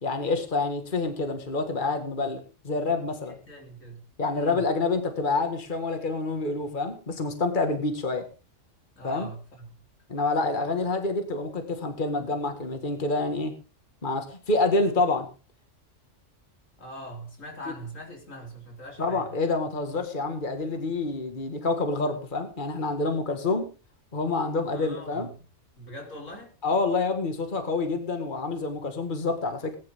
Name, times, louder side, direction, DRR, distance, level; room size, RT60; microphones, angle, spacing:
voice 1, 0.0-2.4 2.7-3.4 4.2-8.3 9.0-9.3 10.1-13.5 14.0-15.3 19.0-23.7 24.1-25.3 26.6-29.8, left 3 dB, 40° left, 2.0 m, -27 dB
voice 2, 3.3-4.0 4.3-4.6 9.0-9.8 16.8-19.3 24.7-25.3 25.8-26.5, right 1 dB, 85° left, 4.0 m, -42 dB
19.5 x 10.5 x 3.7 m
omnidirectional pair, 1.3 m